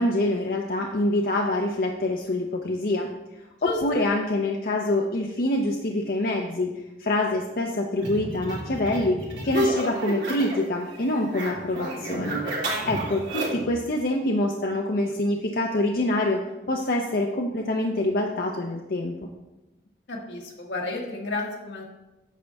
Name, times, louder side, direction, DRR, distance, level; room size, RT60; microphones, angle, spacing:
voice 1, 0.0-3.1 3.6-6.7 7.0-12.4 12.7-16.4 16.7-19.3, left 1 dB, 55° left, 1 dB, 0.7 m, -25 dB
voice 2, 3.6-4.0 20.1-21.8, left 2 dB, 80° left, -1 dB, 1.6 m, -32 dB
sound 1, 8.0-10.7 10.9-13.7, right 1 dB, 90° right, 2.9 m, -30 dB
9.4 x 6.7 x 3.5 m, 1.0 s
head